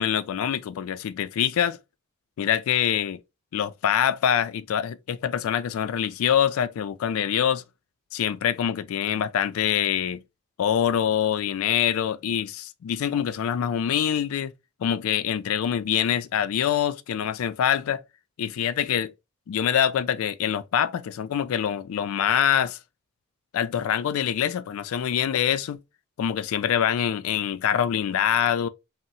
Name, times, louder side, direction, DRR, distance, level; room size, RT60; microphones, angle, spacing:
voice 1, 0.0-1.8 2.4-3.2 3.5-7.6 8.1-10.2 10.6-14.5 14.8-18.0 18.4-19.1 19.5-22.8 23.5-25.8 26.2-28.7, left 9 dB, 80° left, 0.3 m, -25 dB
2.7 x 2.0 x 3.8 m
head